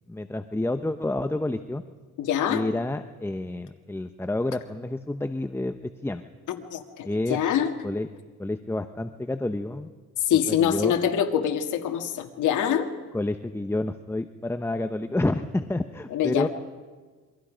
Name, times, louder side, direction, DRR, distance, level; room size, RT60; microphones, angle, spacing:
voice 1, 0.1-1.8 2.5-6.2 7.0-7.4 7.8-8.1 8.4-9.9 10.5-10.9 13.1-16.5, left 2 dB, 10° left, 9 dB, 0.9 m, -29 dB
voice 2, 2.2-2.6 6.7-7.7 10.3-12.9 16.1-16.5, left 9 dB, 80° left, 5 dB, 1.9 m, -24 dB
27.5 x 23.5 x 5.2 m, 1.4 s
cardioid pair, 90°, 30 cm